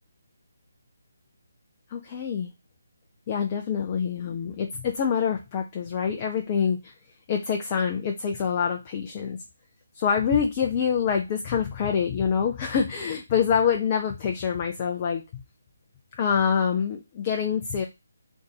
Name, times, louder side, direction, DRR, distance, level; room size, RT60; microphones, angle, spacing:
voice 1, 1.9-2.5 3.3-6.9 7.3-9.4 9.9-15.2 16.2-17.8, left 7 dB, 30° left, 3 dB, 0.4 m, -26 dB
3.5 x 2.5 x 3.9 m, 0.24 s
figure-of-eight pair, 145°, 0 cm